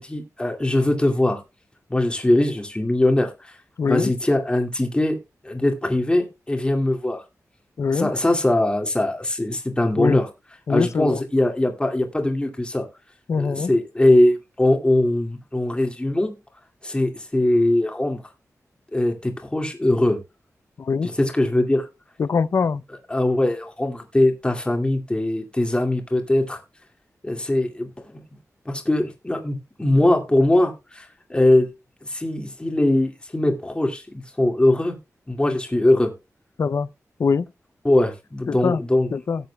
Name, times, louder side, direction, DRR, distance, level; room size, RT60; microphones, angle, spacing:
voice 1, 0.0-1.4 1.9-3.5 3.8-5.2 5.4-7.2 7.9-10.3 10.7-12.9 13.4-16.3 16.8-18.2 18.9-20.2 21.0-21.9 23.1-26.6 27.2-28.2 28.7-31.7 32.0-35.0 35.3-36.1 37.8-39.1, left 1 dB, 15° left, 2.2 m, -21 dB
voice 2, 3.8-4.1 7.8-8.1 10.0-10.2 10.7-11.2 13.3-13.7 20.8-21.1 22.2-22.8 36.6-36.9 37.2-37.5 38.5-38.8 39.1-39.4, left 5 dB, 60° left, 0.5 m, -22 dB
17.5 x 7.9 x 2.3 m
wide cardioid pair, 100°, 6 cm